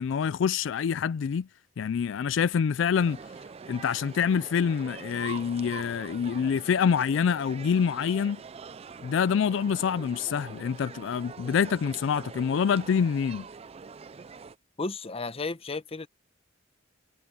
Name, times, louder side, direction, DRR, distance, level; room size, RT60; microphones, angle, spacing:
voice 1, 0.0-1.5 1.8-3.2 3.7-8.4 9.0-13.4, left 7 dB, 75° left, 0.3 m, -26 dB
sound 1, 2.9-14.5, right 5 dB, 30° right, 0.4 m, -44 dB
voice 2, 14.8-16.1, left 3 dB, 30° left, 0.9 m, -33 dB
head